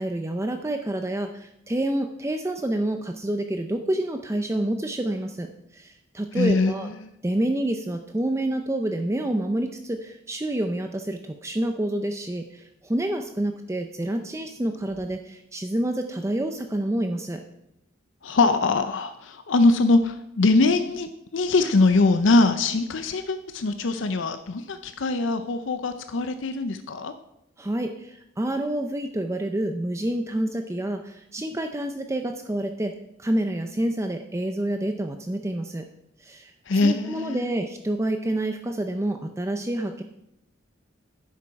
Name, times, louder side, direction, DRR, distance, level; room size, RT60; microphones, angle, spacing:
voice 1, 0.0-5.5 5.7-6.9 7.2-17.4 27.6-32.9 33.2-35.8 36.2-40.0, right 1 dB, 15° right, 5 dB, 0.5 m, -28 dB
voice 2, 6.4-6.7 7.0-7.1 18.2-27.1 36.7-37.4, left 3 dB, 65° left, 9 dB, 0.6 m, -22 dB
10.0 x 7.6 x 4.7 m, 0.81 s
head